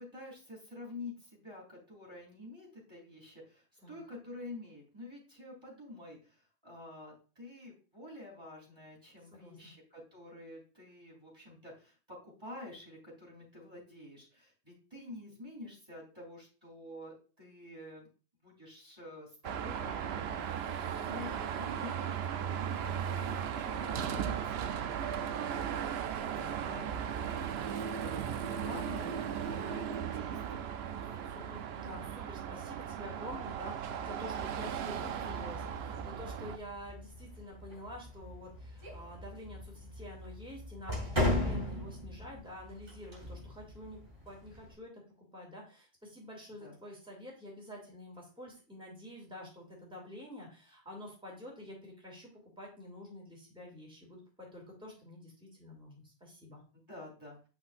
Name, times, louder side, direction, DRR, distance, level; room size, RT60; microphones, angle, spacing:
voice 1, 0.0-18.1 18.4-25.4 25.9-26.0 26.4-28.2 28.5-30.4 46.6-46.8 56.9-57.4, left 2 dB, 25° right, -5 dB, 3.1 m, -49 dB
voice 2, 9.3-9.7 21.0-21.3 26.1-26.7 31.0-45.0 45.3-52.3 52.6-56.6, left 1 dB, 5° right, -2 dB, 2.5 m, -48 dB
Car passing by / Traffic noise roadway noise / Engine, 19.4-36.6, right 8 dB, 70° right, 0.8 m, -37 dB
sound 1, 33.8-44.7, left 1 dB, 50° right, 2.6 m, -39 dB
8.4 x 5.8 x 2.5 m, 0.36 s
omnidirectional pair, 1.1 m